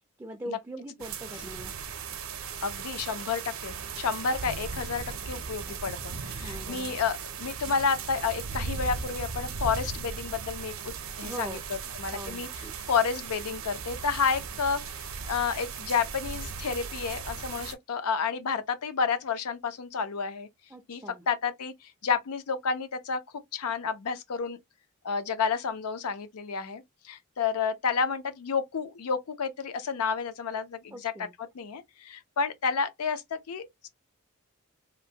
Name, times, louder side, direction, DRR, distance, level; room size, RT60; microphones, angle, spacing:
voice 1, 0.2-1.7 5.7-5.8 6.1-7.0 11.2-11.6 12.1-12.7 20.7-21.2 30.9-31.3, right 1 dB, 10° right, 0.3 m, -42 dB
sound 1, 1.0-17.7, right 5 dB, 65° right, 0.5 m, -37 dB
voice 2, 2.6-12.5 12.8-20.5 20.9-23.2 23.5-24.6 25.0-31.3 31.5-33.9, left 5 dB, 80° left, 0.5 m, -30 dB
2.8 x 2.1 x 2.6 m
head